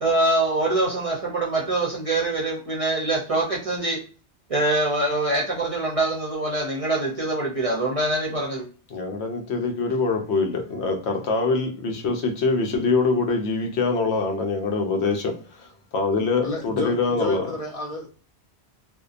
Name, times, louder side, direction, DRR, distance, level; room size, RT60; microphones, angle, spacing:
voice 1, 0.0-4.0 4.5-8.7, right 2 dB, 40° right, 0.6 m, -24 dB
voice 2, 8.9-17.5, left 3 dB, 75° left, 0.8 m, -24 dB
voice 3, 16.4-18.1, left 2 dB, 40° left, 0.7 m, -32 dB
2.7 x 2.1 x 2.4 m
omnidirectional pair, 1.1 m